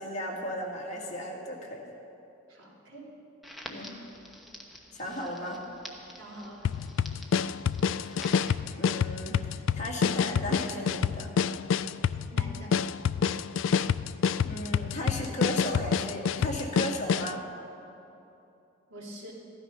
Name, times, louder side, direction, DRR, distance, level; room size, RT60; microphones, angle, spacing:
voice 1, 0.0-1.8 3.6-4.0 4.9-5.7 8.0-8.4 8.8-11.3 14.4-17.4, equal, 35° left, -2 dB, 2.1 m, -35 dB
voice 2, 2.5-3.1 6.2-6.7 12.3-12.7 18.9-19.3, right 1 dB, 85° right, -6 dB, 3.6 m, -44 dB
Crackle, 3.4-8.5, equal, ahead, 1.0 m, -48 dB
sound 1, 6.6-17.4, left 7 dB, 75° left, 0.3 m, -28 dB
14.5 x 12.0 x 5.6 m, 2.8 s
head